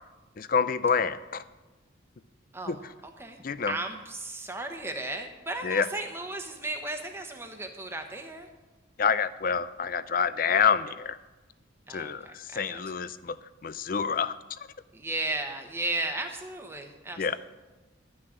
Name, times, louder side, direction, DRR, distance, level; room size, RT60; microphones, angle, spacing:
voice 1, 0.4-1.4 2.7-2.8 3.4-3.7 5.6-5.9 9.0-11.2 11.9-13.4 13.6-14.4 17.2-17.4, left 6 dB, 45° left, 15 dB, 0.4 m, -27 dB
voice 2, 3.7-8.5 11.9-12.8 14.9-17.4, right 2 dB, 10° right, 4 dB, 1.0 m, -35 dB
12.0 x 6.2 x 8.7 m, 1.2 s
head